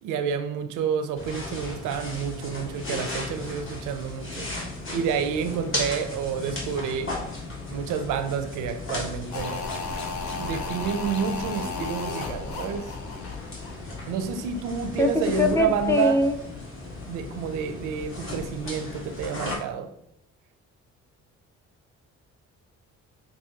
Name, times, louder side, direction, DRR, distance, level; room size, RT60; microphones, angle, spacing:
voice 1, 0.0-4.5 4.9-7.2 7.7-9.7 10.4-12.9 14.1-16.2 17.1-19.9, right 7 dB, 90° right, 0.6 m, -29 dB
sound 1, 1.2-19.6, left 2 dB, 45° left, 1.4 m, -36 dB
sound 2, 9.3-14.5 14.7-14.8, left 4 dB, 75° left, 0.8 m, -35 dB
voice 2, 15.4-16.4, left 2 dB, 10° left, 0.5 m, -22 dB
6.0 x 2.7 x 2.8 m
cardioid pair, 90°, 30 cm